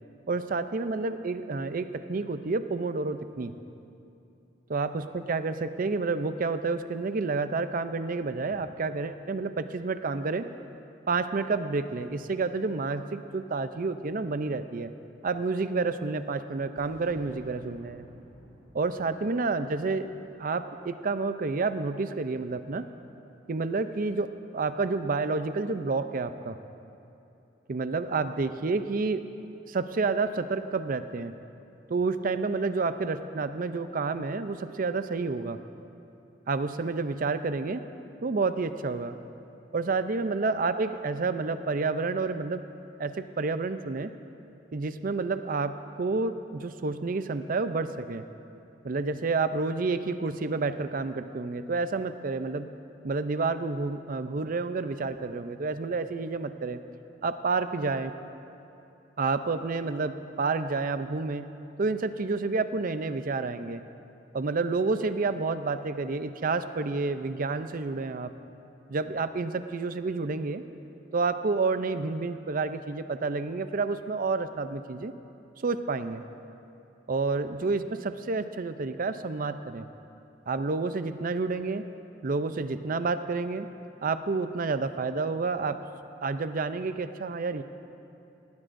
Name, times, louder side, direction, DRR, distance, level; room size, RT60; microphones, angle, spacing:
voice 1, 0.3-3.5 4.7-10.5 11.1-14.9 15.2-18.1 18.7-20.1 20.4-22.9 23.5-24.3 24.5-26.6 27.7-29.3 29.7-31.4 31.9-35.6 36.5-37.8 38.2-39.2 39.7-42.6 43.0-44.1 44.7-48.2 48.8-52.7 53.0-56.8 57.2-58.1 59.2-61.5 61.8-63.8 64.3-68.3 68.9-70.6 71.1-75.1 75.6-76.2 77.1-79.9 80.5-81.8 82.2-83.7 84.0-85.8 86.2-87.6, right 3 dB, 50° right, 11 dB, 0.5 m, -29 dB
Boom, 16.8-21.4, equal, 20° right, 3.1 m, -55 dB
18.5 x 16.5 x 2.6 m, 2.8 s
head